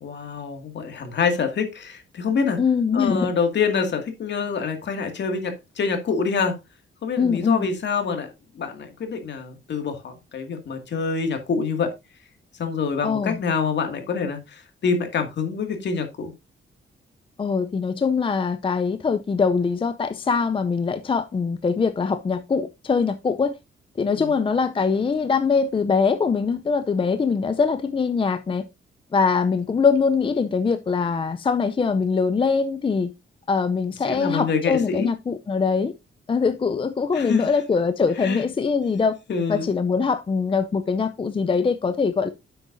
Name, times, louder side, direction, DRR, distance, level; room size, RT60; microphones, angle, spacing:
voice 1, 0.0-2.6 2.9-6.6 7.0-11.9 12.6-16.3 24.2-24.3 34.1-35.1 37.1-37.5 38.2-38.4 39.3-39.7, left 5 dB, 60° left, 2.2 m, -26 dB
voice 2, 2.6-3.3 7.2-7.7 13.0-13.4 17.4-23.6 24.0-28.7 29.1-33.1 33.5-35.9 36.3-39.2 39.5-42.3, left 5 dB, 25° left, 0.5 m, -22 dB
10.0 x 7.8 x 2.6 m
wide cardioid pair, 135°, 20 cm